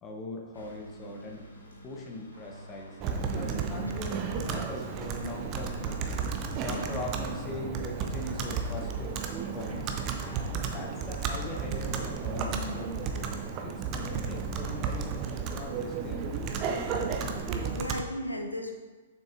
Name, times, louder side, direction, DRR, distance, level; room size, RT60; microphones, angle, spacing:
voice 1, 0.0-1.4 1.8-6.0 6.6-13.3 13.6-17.2, left 2 dB, 20° left, 0 dB, 0.9 m, -41 dB
sound 1, 0.5-6.1, left 1 dB, 65° left, 1.3 m, -51 dB
sound 2, 2.3-13.2, right 1 dB, 65° right, 1.7 m, -54 dB
Computer keyboard, 3.0-18.0, right 5 dB, 30° right, 0.5 m, -33 dB
voice 2, 3.3-3.9 6.5-6.9 17.7-18.7, equal, 85° left, 3 dB, 0.7 m, -36 dB
7.0 x 6.1 x 2.6 m, 1.3 s
figure-of-eight pair, 115°, 0 cm